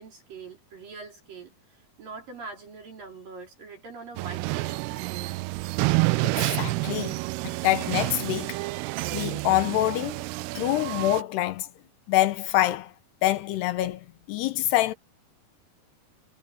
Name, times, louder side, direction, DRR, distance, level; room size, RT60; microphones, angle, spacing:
voice 1, 0.0-5.5, right 4 dB, 55° right, 6.1 m, -43 dB
sound 1, 4.2-11.2, right 24 dB, 85° right, 2.4 m, -29 dB
voice 2, 6.2-7.1 7.4-8.6 9.1-10.2 10.6-11.7 12.1-12.9 13.2-14.9, left 15 dB, 80° left, 2.8 m, -26 dB
omnidirectional pair, 5.0 m